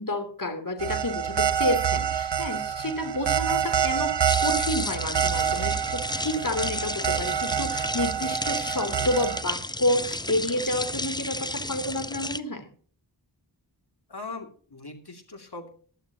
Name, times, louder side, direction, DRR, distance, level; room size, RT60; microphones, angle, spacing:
voice 1, 0.0-4.1 4.4-12.7, left 1 dB, 50° left, 6 dB, 3.1 m, -29 dB
sound 1, 0.8-9.4, right 8 dB, 75° right, 0.8 m, -27 dB
sound 2, 4.3-12.4, left 1 dB, 10° left, 0.6 m, -33 dB
voice 2, 14.1-15.7, left 3 dB, 65° left, 5 dB, 2.5 m, -41 dB
16.0 x 11.5 x 2.9 m, 0.43 s
wide cardioid pair, 55°, 42 cm